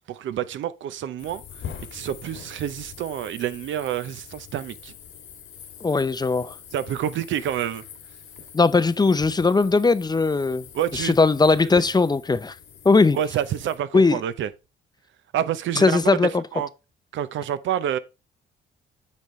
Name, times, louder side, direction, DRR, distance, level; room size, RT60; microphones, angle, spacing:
voice 1, 0.1-1.4 1.9-4.9 6.7-7.8 10.7-11.1 11.7-11.8 13.1-14.5 15.3-16.1 16.5-16.7 17.1-18.0, right 10 dB, 75° right, 0.7 m, -28 dB
sound 1, 1.2-13.8, left 8 dB, 75° left, 1.8 m, -43 dB
voice 2, 5.8-6.5 8.5-10.6 10.9-12.5 12.8-13.2 13.9-14.2 15.8-16.3, left 3 dB, 20° left, 0.5 m, -19 dB
8.3 x 5.4 x 3.1 m
cardioid pair, 90°, 20 cm